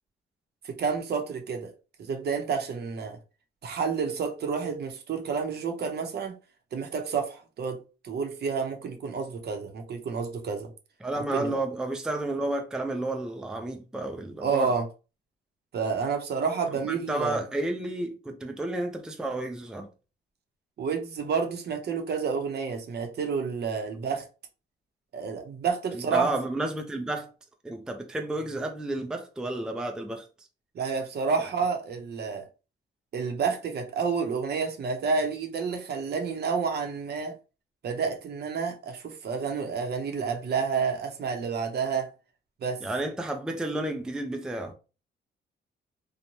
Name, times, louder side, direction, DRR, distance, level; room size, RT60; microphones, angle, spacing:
voice 1, 0.6-1.7 2.0-3.2 3.6-6.3 6.7-7.8 8.0-10.7 11.3-11.5 14.4-14.9 15.7-17.4 20.8-24.3 25.1-26.3 30.7-32.5 33.1-37.3 37.8-42.1 42.6-42.8, right 5 dB, 55° right, 0.7 m, -29 dB
voice 2, 11.0-14.7 16.9-19.9 25.9-27.3 27.6-30.3 31.4-31.5 42.8-44.7, right 2 dB, 5° right, 0.4 m, -31 dB
3.0 x 2.1 x 2.7 m
cardioid pair, 90°, 20 cm